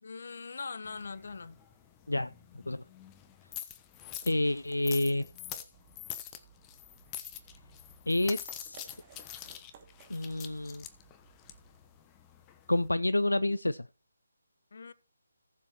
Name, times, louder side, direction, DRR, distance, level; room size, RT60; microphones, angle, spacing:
voice 1, 0.0-1.6 14.7-14.9, left 4 dB, 55° left, 1.0 m, -41 dB
sound 1, 0.8-12.9, left 11 dB, 15° left, 1.1 m, -46 dB
sound 2, 3.8-12.0, right 7 dB, 25° right, 2.4 m, -59 dB
voice 2, 4.2-5.2 8.1-8.9 10.1-10.9 12.7-13.9, left 1 dB, 80° left, 0.5 m, -29 dB
19.0 x 7.4 x 3.0 m
figure-of-eight pair, 150°, 0 cm